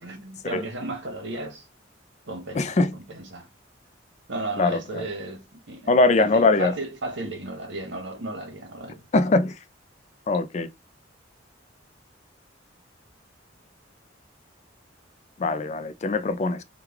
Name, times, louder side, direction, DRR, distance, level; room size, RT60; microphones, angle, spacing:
voice 1, 0.0-1.7 2.3-3.5 4.3-5.9 6.2-9.1, right 2 dB, 75° right, 1.1 m, -34 dB
voice 2, 2.5-2.9 4.6-5.1 5.9-6.7 9.1-9.6 10.3-10.7 15.4-16.6, left 3 dB, 35° left, 0.4 m, -22 dB
3.1 x 2.3 x 3.5 m
head